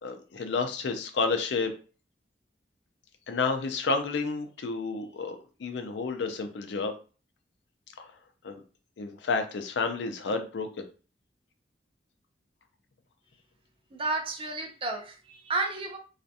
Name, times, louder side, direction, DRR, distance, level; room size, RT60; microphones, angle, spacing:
voice 1, 0.0-1.7 3.3-6.9 8.0-8.1 8.4-8.6 9.0-10.7, left 4 dB, 75° left, 0.4 m, -30 dB
voice 2, 13.9-16.0, right 2 dB, 30° right, 0.5 m, -32 dB
2.4 x 2.2 x 2.6 m
head